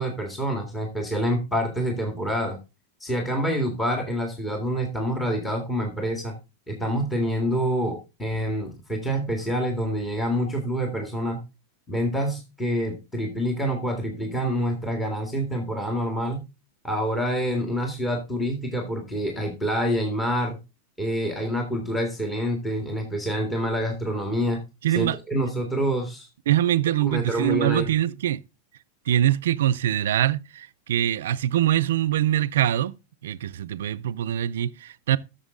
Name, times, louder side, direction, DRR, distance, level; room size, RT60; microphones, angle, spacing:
voice 1, 0.0-2.6 3.0-6.4 6.7-11.4 11.9-16.4 16.8-20.6 21.0-24.6 24.9-26.3 27.0-27.9, equal, 10° left, 1.9 m, -27 dB
voice 2, 24.8-25.2 26.5-28.4 29.1-32.9 33.2-35.2, right 12 dB, 85° right, 0.5 m, -23 dB
12.5 x 6.7 x 3.8 m
supercardioid pair, 155°, 0 cm